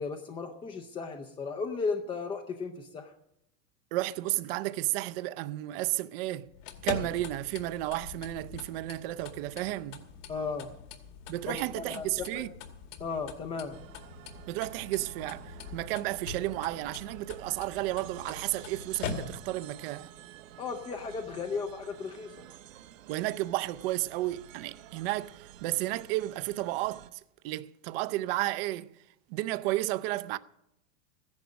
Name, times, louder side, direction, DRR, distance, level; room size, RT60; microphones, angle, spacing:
voice 1, 0.0-3.1 10.3-10.7 11.5-12.4 13.0-13.8 20.6-22.5, left 4 dB, 15° left, 0.5 m, -35 dB
voice 2, 3.9-6.5 6.8-10.0 11.3-12.5 14.5-15.5 15.7-20.1 23.1-28.9 29.3-30.4, right 17 dB, 50° right, 0.6 m, -32 dB
sound 1, 6.5-19.7, left 6 dB, 75° left, 2.3 m, -43 dB
sound 2, 13.7-27.1, right 11 dB, 80° right, 1.0 m, -50 dB
14.5 x 10.5 x 6.3 m
supercardioid pair, 150°, 39 cm